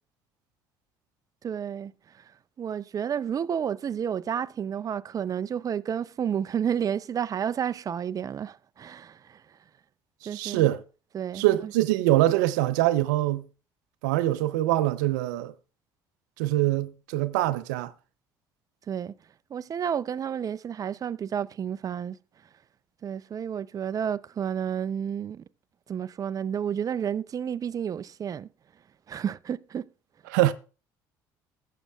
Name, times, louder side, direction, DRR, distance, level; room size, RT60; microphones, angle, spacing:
voice 1, 1.4-1.9 2.6-9.2 10.3-10.7 11.1-11.4 18.9-19.1 19.5-22.2 23.0-25.4 25.9-28.5 29.1-29.8, right 8 dB, 40° right, 0.4 m, -31 dB
voice 2, 10.2-10.8 11.3-13.5 14.0-15.5 16.4-17.9 30.3-30.5, right 15 dB, 90° right, 0.5 m, -24 dB
14.0 x 7.5 x 2.3 m
supercardioid pair, 75°, 10 cm